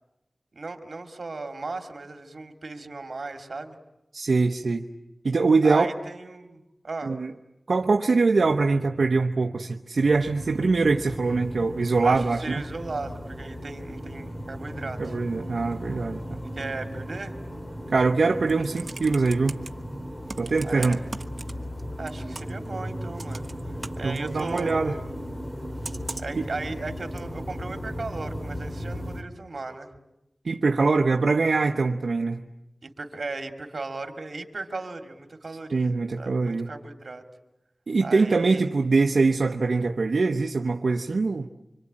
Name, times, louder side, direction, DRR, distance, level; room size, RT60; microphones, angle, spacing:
voice 1, 0.6-3.8 5.6-7.1 12.0-15.1 16.5-17.3 20.6-21.0 22.0-23.4 24.0-25.1 26.2-29.9 32.8-37.2 38.0-38.7, right 3 dB, 65° right, 6 dB, 2.4 m, -36 dB
voice 2, 4.1-4.8 5.2-5.9 7.0-7.3 7.7-12.6 15.0-16.4 17.9-19.6 20.4-21.0 24.0-24.9 26.4-26.5 30.4-32.4 35.7-36.7 37.9-41.5, right 3 dB, 85° right, 3 dB, 0.9 m, -23 dB
sound 1, 10.0-29.2, equal, 20° left, 2.5 m, -36 dB
Computer keyboard, 18.3-19.7 20.3-21.8 22.1-22.7 23.2-24.7 25.8-26.4 27.2-27.3, right 3 dB, 50° right, 1.1 m, -39 dB
26.0 x 26.0 x 8.8 m, 0.92 s
wide cardioid pair, 85°, 0 cm